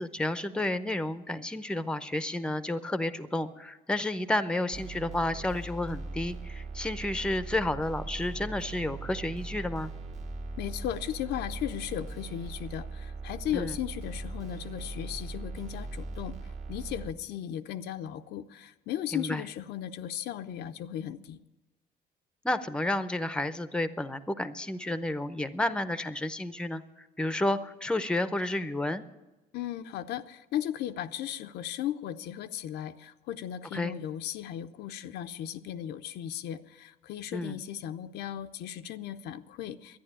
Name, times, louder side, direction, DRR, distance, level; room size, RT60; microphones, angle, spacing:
voice 1, 0.0-9.9 13.5-13.8 19.1-19.4 22.4-29.0 33.7-33.9 37.3-37.6, left 1 dB, 5° left, 13 dB, 0.7 m, -31 dB
sound 1, 4.7-17.1, right 3 dB, 40° right, 1.4 m, -40 dB
voice 2, 10.6-16.3 16.7-21.4 29.5-40.0, left 11 dB, 80° left, 9 dB, 0.7 m, -36 dB
11.5 x 10.0 x 10.0 m, 1.1 s
cardioid pair, 110°, 17 cm